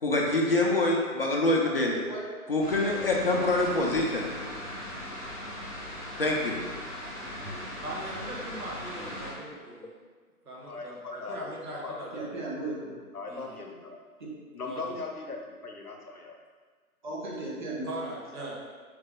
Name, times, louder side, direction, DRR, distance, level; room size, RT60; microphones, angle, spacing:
voice 1, 0.0-2.0 2.5-4.3 6.2-6.6, left 2 dB, 40° left, -2 dB, 0.5 m, -25 dB
voice 2, 1.9-2.2 7.4-7.6 12.1-12.9 17.0-17.9, right 2 dB, 30° right, -5 dB, 0.8 m, -36 dB
sound 1, 2.6-9.3, left 1 dB, 5° left, 0.9 m, -39 dB
voice 3, 7.8-9.9 10.4-11.0 11.3-12.3 13.3-13.6 14.7-15.0 17.8-18.5, right 1 dB, 75° right, -4 dB, 1.3 m, -40 dB
voice 4, 10.7-11.5 11.8-12.1 13.1-14.0 14.5-16.3, left 4 dB, 80° left, 1 dB, 0.8 m, -39 dB
3.5 x 3.3 x 3.5 m, 1.5 s
figure-of-eight pair, 140°, 45 cm